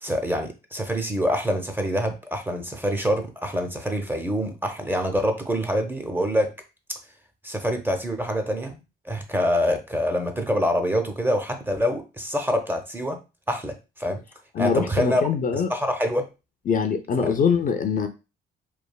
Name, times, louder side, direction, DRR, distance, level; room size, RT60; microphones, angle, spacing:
voice 1, 0.0-6.5 7.4-13.2 13.5-14.2 14.6-15.2 15.5-16.3, equal, 10° right, 5 dB, 0.5 m, -25 dB
voice 2, 14.5-15.7 16.7-18.1, left 6 dB, 45° left, 7 dB, 0.4 m, -23 dB
3.2 x 2.3 x 2.2 m, 0.29 s
cardioid pair, 90°, 20 cm